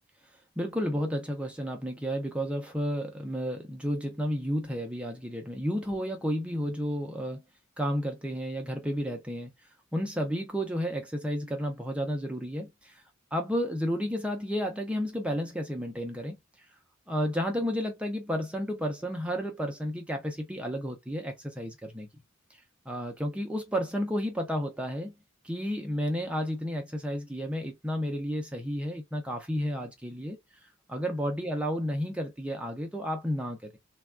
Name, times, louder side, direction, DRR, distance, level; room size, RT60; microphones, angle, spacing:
voice 1, 0.6-7.4 7.8-9.5 9.9-13.0 13.3-16.4 17.1-22.1 22.5-22.6 22.9-25.1 25.4-30.4 30.9-33.8, equal, 5° right, 0.5 m, -32 dB
3.3 x 2.2 x 2.2 m
head